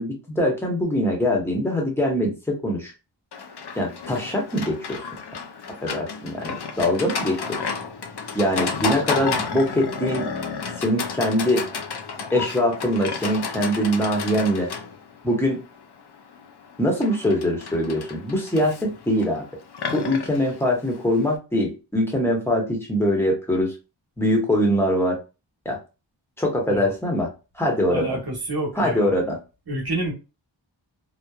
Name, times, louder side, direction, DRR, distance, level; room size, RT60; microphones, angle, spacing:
voice 1, 0.0-2.9 3.8-5.0 5.8-7.6 8.3-10.3 10.8-11.7 12.3-14.7 15.2-15.6 16.8-19.4 19.9-23.7 24.2-25.2 25.6-25.8 26.4-27.3 27.6-28.2 28.8-29.4, equal, 5° left, 0 dB, 1.0 m, -23 dB
Livestock farm animals working animals, 3.3-21.3, left 5 dB, 60° left, 0.5 m, -32 dB
voice 2, 27.9-29.1 29.7-30.1, right 2 dB, 55° right, -1 dB, 1.1 m, -28 dB
2.8 x 2.1 x 2.3 m, 0.29 s
wide cardioid pair, 40°, 46 cm